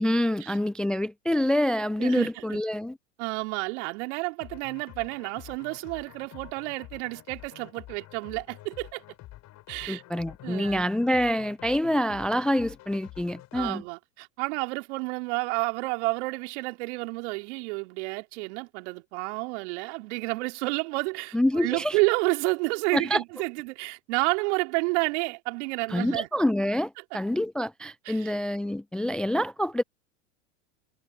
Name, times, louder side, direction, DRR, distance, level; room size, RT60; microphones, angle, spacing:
voice 1, 0.0-3.0 9.9-13.8 21.3-22.0 22.9-23.2 25.9-29.8, left 1 dB, ahead, 0.4 m, -26 dB
voice 2, 2.0-2.6 3.2-9.0 9.7-10.0 10.4-10.8 13.5-26.3 28.1-28.3, right 27 dB, 60° right, 3.6 m, -30 dB
sound 1, 4.4-13.7, left 16 dB, 45° left, 7.2 m, -48 dB
hypercardioid pair, 95°, 39 cm